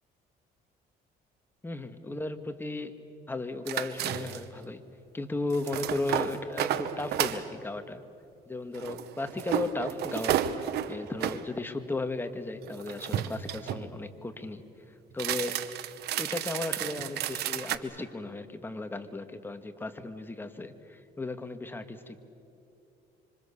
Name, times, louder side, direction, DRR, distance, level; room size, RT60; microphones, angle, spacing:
voice 1, 1.6-2.9 3.3-4.8 5.1-8.0 8.5-10.4 10.9-14.6 15.1-15.6 16.2-22.2, left 2 dB, 10° left, 8 dB, 1.6 m, -35 dB
sound 1, 3.7-4.6 5.5-7.4 8.7-11.4 12.6-13.9 15.1-17.8, right 11 dB, 75° right, 1.1 m, -32 dB
26.0 x 25.5 x 7.0 m, 2.7 s
cardioid pair, 110°, 17 cm